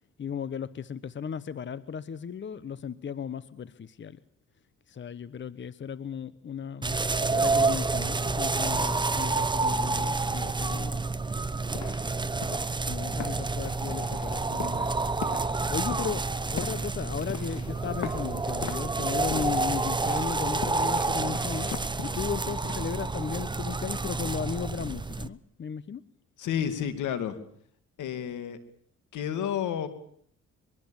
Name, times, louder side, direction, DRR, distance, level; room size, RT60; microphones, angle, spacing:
voice 1, 0.2-4.2 4.9-11.0 12.9-15.0 15.7-16.2 16.5-21.7 22.0-26.0, left 7 dB, 40° left, 16 dB, 1.0 m, -35 dB
sound 1, 6.8-25.3, right 3 dB, 15° right, 1.0 m, -29 dB
sound 2, 11.7-22.9, left 8 dB, 65° left, 2.4 m, -41 dB
voice 2, 26.4-27.4 28.0-28.6 29.1-29.9, left 9 dB, 80° left, 11 dB, 2.7 m, -30 dB
23.5 x 23.0 x 7.3 m, 0.63 s
cardioid pair, 90°, 30 cm